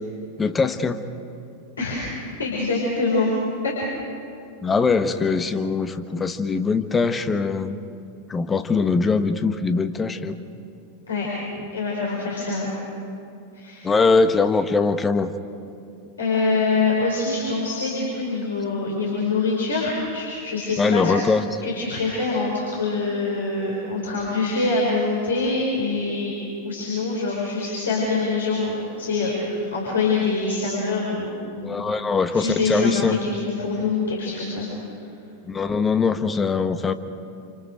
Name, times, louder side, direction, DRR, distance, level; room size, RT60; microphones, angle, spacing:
voice 1, 0.4-1.0 4.6-7.8 8.3-10.4 13.8-15.3 20.8-21.4 31.6-33.2 35.5-36.9, left 4 dB, 15° left, 10 dB, 1.3 m, -22 dB
voice 2, 1.8-3.4 3.6-3.7 11.1-11.3 11.7-12.7 13.5-13.9 16.2-21.1 21.6-26.3 26.6-31.8 32.3-35.0, left 3 dB, 70° left, -5 dB, 5.3 m, -25 dB
28.5 x 28.5 x 5.1 m, 2.5 s
figure-of-eight pair, 90°, 0 cm